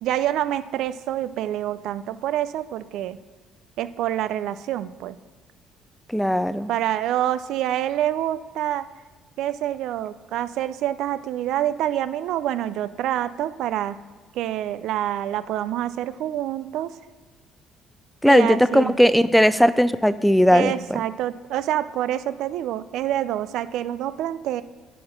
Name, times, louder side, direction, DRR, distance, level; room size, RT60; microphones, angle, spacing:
voice 1, 0.0-3.2 3.8-5.2 6.7-8.9 9.4-14.0 14.3-16.9 18.3-18.9 20.5-24.6, right 12 dB, 70° right, 15 dB, 0.4 m, -26 dB
voice 2, 6.1-6.7 18.2-21.0, equal, ahead, 15 dB, 0.5 m, -18 dB
10.5 x 4.3 x 5.0 m, 1.4 s
hypercardioid pair, 60°, 0 cm